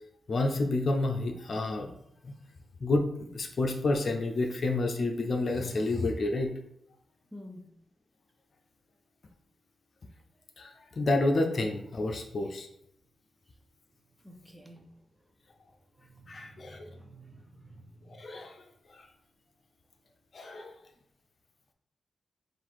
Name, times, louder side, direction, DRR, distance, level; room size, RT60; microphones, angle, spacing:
voice 1, 0.3-1.9 2.2-2.3 2.8-6.5 10.6-12.7 16.3-16.9 18.1-18.6 18.9-19.1 20.3-20.7, left 2 dB, 50° left, 4 dB, 0.6 m, -29 dB
voice 2, 7.3-7.7 14.2-14.9 16.0-17.9, equal, 10° right, 4 dB, 0.7 m, -50 dB
3.8 x 2.5 x 4.7 m, 0.75 s
cardioid pair, 85°, 0 cm